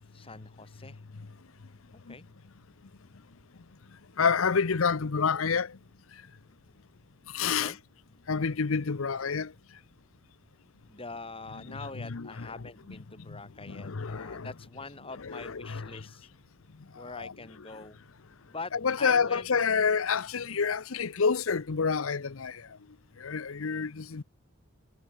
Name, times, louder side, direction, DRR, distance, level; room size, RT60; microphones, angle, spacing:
voice 1, 0.1-1.0 2.1-2.3 7.5-7.8 10.9-16.3 17.0-18.0 18.5-19.5 20.4-20.6, left 3 dB, 25° left, 5.7 m, -44 dB
voice 2, 4.2-5.8 7.3-7.8 8.3-9.5 11.7-13.0 13.7-14.5 15.1-16.1 17.0-17.3 18.7-22.7 23.2-24.2, left 5 dB, 80° left, 0.8 m, -29 dB
head